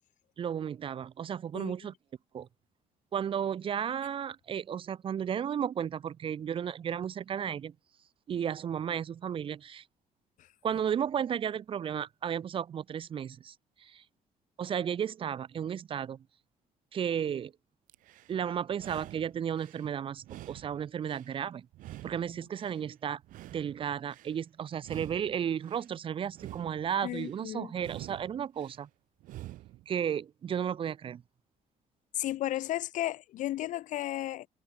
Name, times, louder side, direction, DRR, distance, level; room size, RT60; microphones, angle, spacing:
voice 1, 0.4-1.9 2.3-2.5 3.1-7.7 8.3-9.8 10.6-13.5 13.8-14.0 14.6-16.2 16.9-17.5 18.3-21.7 22.0-23.2 23.5-28.9 29.9-31.2, right 8 dB, 40° right, 2.7 m, -33 dB
sound 1, 17.9-18.4 18.7-19.9 20.2-21.4 21.7-22.8 23.2-24.3 24.8-25.9 26.3-27.4 27.8-28.8 29.2-29.9, right 16 dB, 90° right, 2.8 m, -47 dB
voice 2, 27.0-27.7 32.1-34.5, left 14 dB, 75° left, 1.5 m, -34 dB
cardioid pair, 160°, 13 cm